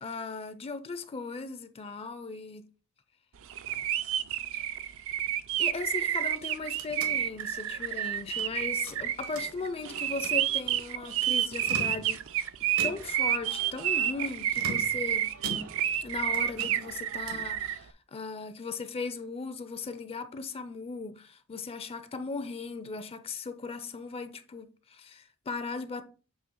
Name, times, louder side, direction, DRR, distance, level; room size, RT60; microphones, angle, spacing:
voice 1, 0.0-2.7 5.6-12.2 12.8-15.3 16.0-26.0, left 4 dB, 25° left, 0.4 m, -38 dB
sound 1, 3.5-17.8, right 11 dB, 65° right, 0.4 m, -30 dB
sound 2, 6.3-8.5 8.8-9.8 10.1-10.4 11.5-12.3 12.8-13.3 14.5-16.0 16.3-17.5, right 2 dB, 85° right, 1.5 m, -42 dB
7.4 x 3.1 x 4.5 m
head